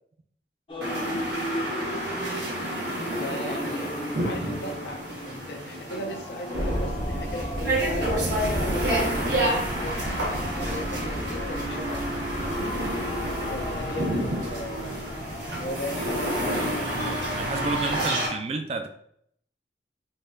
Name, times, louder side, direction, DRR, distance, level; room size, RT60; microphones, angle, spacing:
sound 1, 0.7-17.3, equal, 30° left, 0.5 m, -39 dB
voice 1, 0.8-1.2 3.2-3.8 4.2-5.0 5.2-8.2 8.6-10.1 10.5-12.7 13.5-15.0 15.6-17.1 18.0-18.3, left 1 dB, 75° left, 4 dB, 0.6 m, -37 dB
sound 2, 0.8-18.3, right 1 dB, 80° right, 1.4 m, -30 dB
sound 3, 6.5-18.1, equal, 65° right, 1.2 m, -35 dB
voice 2, 17.0-18.9, right 3 dB, 35° right, 6 dB, 0.3 m, -31 dB
4.0 x 2.8 x 2.6 m, 0.67 s
head